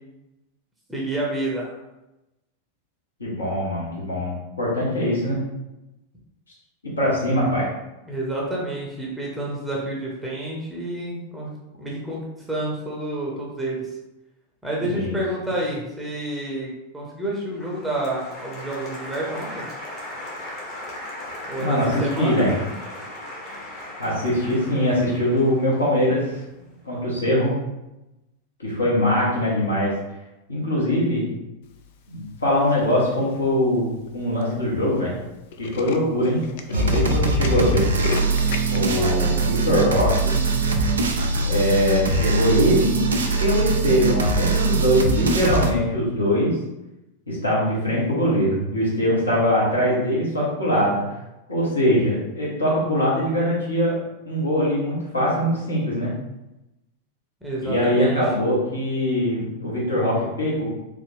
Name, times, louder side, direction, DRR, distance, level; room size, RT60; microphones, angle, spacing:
voice 1, 0.9-1.8 8.1-11.5 11.8-14.0 14.6-19.7 21.4-22.5 26.6-26.8 39.0-39.4 57.4-58.2, right 1 dB, 5° right, -4 dB, 0.8 m, -29 dB
voice 2, 3.2-5.4 7.0-7.7 14.8-15.2 21.6-22.6 24.0-26.4 26.8-27.5 28.6-29.9 30.5-31.3 32.1-35.2 35.6-36.4 36.7-37.9 38.7-40.4 41.4-43.0 43.4-46.6 47.3-51.0 51.5-53.9 54.2-56.1 57.6-60.6, equal, 75° left, -6 dB, 1.2 m, -22 dB
Applause, 17.5-26.6, left 1 dB, 35° left, 1.0 m, -37 dB
Tools, 32.7-33.1 33.7-33.8 34.1-34.2 34.4-34.6 34.9-35.0 35.3-38.8, left 4 dB, 50° left, 0.3 m, -32 dB
sound 1, 36.7-45.7, right 3 dB, 70° right, 0.4 m, -22 dB
3.4 x 2.4 x 3.4 m, 0.95 s
figure-of-eight pair, 90°, 0 cm